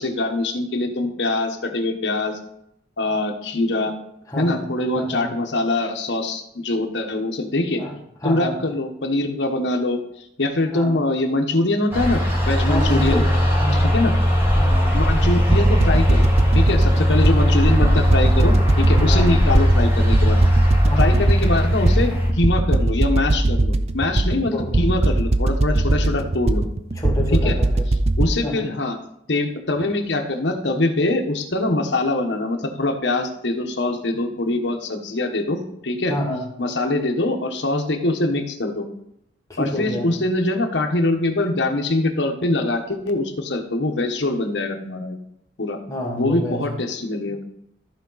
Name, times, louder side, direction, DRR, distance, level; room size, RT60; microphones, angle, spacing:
voice 1, 0.0-2.4 3.0-3.9 4.4-7.8 8.2-10.0 10.4-13.2 13.7-14.1 14.9-16.3 16.5-20.4 21.0-26.7 27.3-27.6 28.2-29.0 29.3-36.1 36.6-38.9 39.6-45.2 45.6-45.8 46.2-47.4, left 2 dB, 75° left, 4 dB, 1.2 m, -23 dB
voice 2, 4.3-4.7 4.9-5.3 7.7-7.9 8.2-8.6 10.7-11.0 12.7-13.9 14.6-14.9 19.1-19.4 20.8-21.2 24.5-24.8 26.9-27.9 28.4-28.7 34.1-34.5 36.1-36.4 39.5-40.1 45.9-46.6, left 1 dB, 20° left, -2 dB, 1.7 m, -28 dB
sound 1, 11.9-22.3, equal, 10° right, 1.9 m, -18 dB
sound 2, 15.0-28.3, right 2 dB, 35° right, 0.5 m, -20 dB
14.0 x 4.8 x 4.0 m, 0.77 s
head